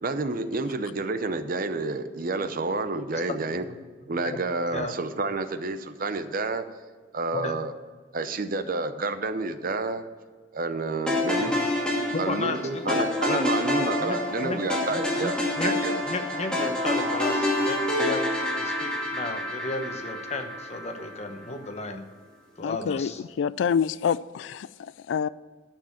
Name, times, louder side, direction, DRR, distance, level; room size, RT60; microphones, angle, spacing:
voice 1, 0.0-3.6 4.1-6.6 7.1-7.7 8.1-10.1 10.5-11.6 12.2-15.3 15.6-15.9, right 3 dB, 50° right, 10 dB, 0.7 m, -29 dB
voice 2, 4.0-4.4 4.7-4.9 7.3-7.5 11.3-11.4 12.1-13.5 13.7-14.6 14.9-15.8 16.1-22.0 22.6-23.2, left 2 dB, 35° left, 6 dB, 1.0 m, -34 dB
sound 1, 11.1-21.3, left 1 dB, 5° left, 2.2 m, -28 dB
voice 3, 22.6-25.3, left 7 dB, 85° left, 18 dB, 0.3 m, -27 dB
11.5 x 6.6 x 5.8 m, 1.5 s
head